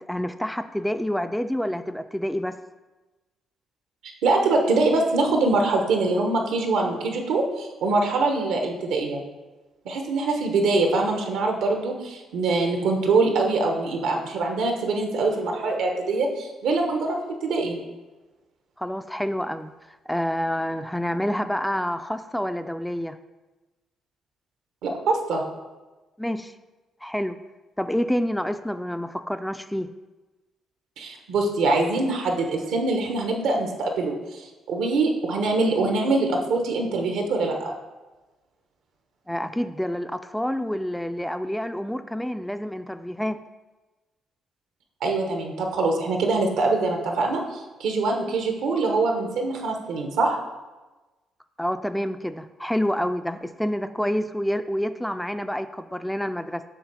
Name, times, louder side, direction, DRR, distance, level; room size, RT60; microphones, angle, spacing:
voice 1, 0.0-2.6 18.8-23.2 26.2-26.5 27.0-27.4 27.8-29.9 39.3-43.4 51.6-56.6, equal, 5° left, 10 dB, 0.3 m, -28 dB
voice 2, 4.2-9.2 9.8-17.8 24.8-25.4 31.0-37.7 45.0-50.4, right 3 dB, 85° right, 2 dB, 1.1 m, -24 dB
7.3 x 3.2 x 6.1 m, 1.2 s
cardioid pair, 90°, 0 cm